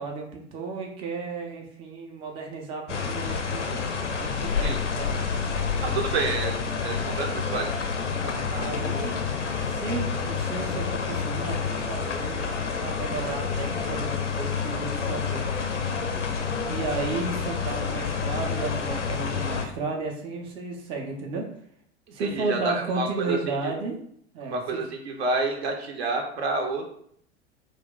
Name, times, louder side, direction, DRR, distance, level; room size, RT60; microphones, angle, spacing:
voice 1, 0.0-3.9 4.1-5.4 8.2-9.2 9.7-15.5 16.7-21.5 22.1-24.0 24.3-24.8, right 3 dB, 15° right, 1 dB, 0.3 m, -33 dB
sound 1, 2.9-19.7, left 5 dB, 90° left, 0.5 m, -29 dB
voice 2, 5.8-7.7 22.2-23.7 24.4-27.1, right 3 dB, 65° right, 3 dB, 0.6 m, -29 dB
2.3 x 2.0 x 3.8 m, 0.65 s
figure-of-eight pair, 80°, 35 cm